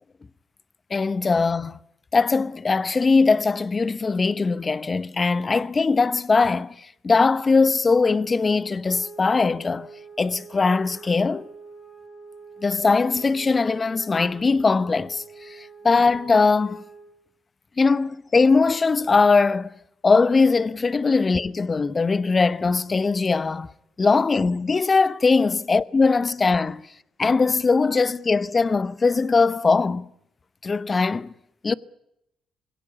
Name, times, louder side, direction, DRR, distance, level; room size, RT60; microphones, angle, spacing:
voice 1, 0.9-1.8 2.1-9.9 10.2-11.5 12.6-16.8 17.8-19.7 20.0-23.7 24.0-26.9 27.2-30.1 30.6-31.3 31.6-31.7, left 4 dB, 30° left, 0.9 m, -21 dB
sound 1, 8.8-17.2, right 4 dB, 15° left, 5.5 m, -45 dB
22.5 x 17.5 x 8.3 m
cardioid pair, 90°, 0 cm